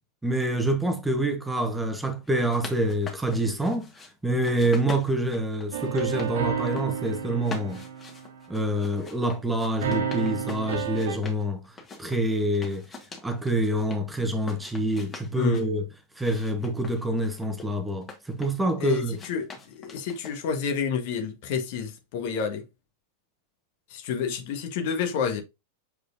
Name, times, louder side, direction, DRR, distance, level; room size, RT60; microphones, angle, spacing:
voice 1, 0.2-3.9 4.2-7.8 8.5-11.6 12.0-12.8 13.2-15.9 16.2-19.2, right 1 dB, 5° right, 1.2 m, -26 dB
sound 1, 2.3-4.1 4.4-6.3 6.6-7.1 7.4-11.4 11.8-14.0 14.4-15.7 16.2-18.7 19.1-20.6, left 4 dB, 20° left, 1.9 m, -43 dB
sound 2, 5.7-8.9 9.8-11.2, right 7 dB, 60° right, 1.0 m, -31 dB
voice 2, 15.3-15.7 18.8-22.6 23.9-25.4, left 6 dB, 50° left, 1.4 m, -29 dB
7.2 x 4.9 x 2.7 m
figure-of-eight pair, 90°, 0 cm